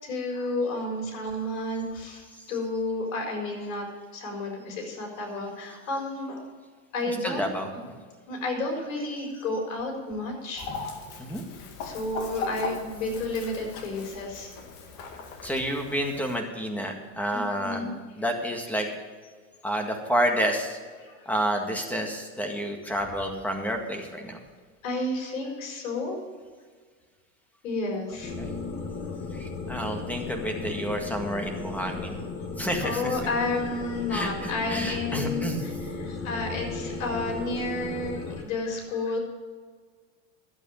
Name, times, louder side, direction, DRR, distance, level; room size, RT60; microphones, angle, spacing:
voice 1, 0.0-6.4 6.9-7.4 8.3-10.7 11.8-14.5 17.3-17.9 21.0-21.3 24.8-26.2 27.6-28.3 32.8-39.2, left 2 dB, 90° left, 2 dB, 4.6 m, -31 dB
voice 2, 7.0-8.0 11.2-11.4 15.4-17.9 18.2-18.9 19.6-20.8 21.3-24.4 28.4-28.5 29.3-32.3 32.6-33.2 34.1-35.6, equal, 5° left, 3 dB, 1.8 m, -30 dB
Chicken rooster, 10.6-16.4, left 4 dB, 50° left, 2.1 m, -38 dB
sound 1, 28.2-38.4, left 4 dB, 35° left, 1.8 m, -35 dB
12.0 x 8.2 x 7.1 m, 1.6 s
supercardioid pair, 135°, 39 cm